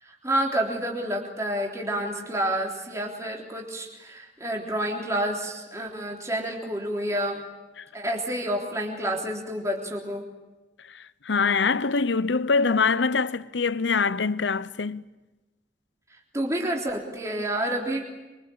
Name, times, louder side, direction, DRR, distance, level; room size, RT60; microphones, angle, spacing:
voice 1, 0.0-7.4 7.9-10.3 16.3-18.1, right 1 dB, 15° right, 3.6 m, -29 dB
voice 2, 10.9-15.0, left 4 dB, 85° left, 0.8 m, -24 dB
26.0 x 24.5 x 8.7 m
head